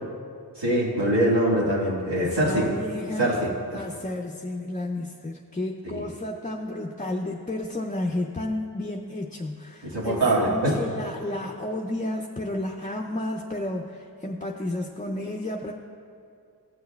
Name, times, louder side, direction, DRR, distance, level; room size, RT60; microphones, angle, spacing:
voice 1, 0.6-2.7 3.2-3.8 5.8-6.0 9.8-10.8, right 1 dB, 90° right, -6 dB, 1.9 m, -23 dB
voice 2, 2.2-3.4 3.7-15.7, left 1 dB, 20° left, 1 dB, 0.5 m, -32 dB
17.5 x 6.5 x 2.3 m, 2.3 s
cardioid pair, 40°, 40 cm